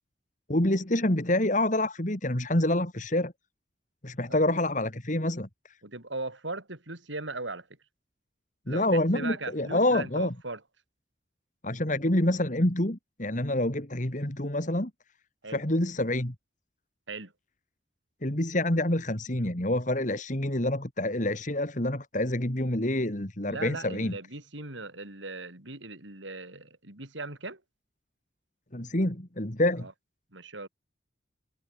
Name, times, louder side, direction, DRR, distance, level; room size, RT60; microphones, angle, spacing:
voice 1, 0.5-3.3 4.0-5.5 8.7-10.3 11.6-14.9 15.5-16.3 18.2-24.1 28.7-29.9, left 1 dB, 40° left, 2.7 m, -27 dB
voice 2, 5.8-7.7 8.7-10.6 15.4-15.6 17.1-17.3 23.5-27.6 29.8-29.9 30.3-30.7, right 3 dB, 80° right, 5.9 m, -38 dB
head